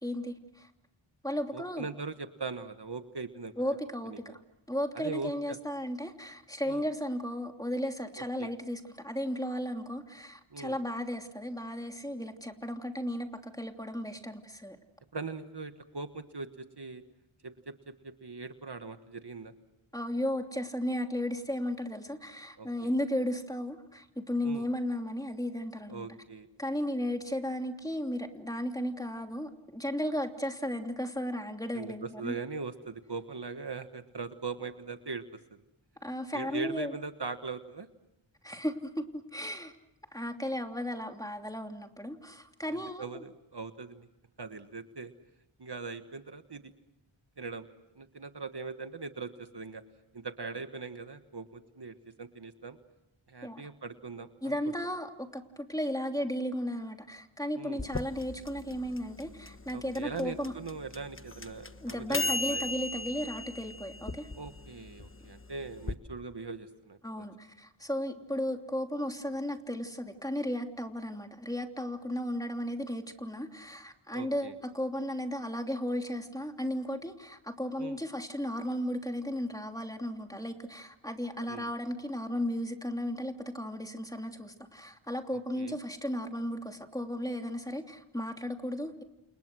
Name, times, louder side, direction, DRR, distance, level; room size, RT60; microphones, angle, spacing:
voice 1, 0.0-0.7 1.2-1.9 3.6-4.4 4.7-14.8 19.9-26.1 26.6-32.4 36.0-36.9 38.4-39.7 40.1-43.2 53.4-53.7 54.4-60.5 61.8-64.3 67.0-89.0, equal, 5° left, 4 dB, 3.0 m, -35 dB
voice 2, 1.5-3.5 4.1-4.3 4.9-5.6 6.7-6.8 8.4-8.5 10.5-10.8 15.1-17.0 17.4-19.5 22.6-22.9 24.4-24.6 25.9-26.5 31.7-35.2 35.5-35.6 36.3-37.9 42.7-44.1 44.4-45.1 45.6-46.7 47.4-47.7 48.0-49.8 50.1-52.8 53.3-54.6 57.5-57.8 59.7-62.6 64.3-67.3 74.1-74.5 77.8-78.0 81.5-81.7 85.6-85.8, right 4 dB, 55° right, 8 dB, 1.4 m, -41 dB
sound 1, 57.8-65.9, left 3 dB, 25° left, 1.2 m, -37 dB
30.0 x 28.5 x 6.3 m, 0.86 s
wide cardioid pair, 55°, 49 cm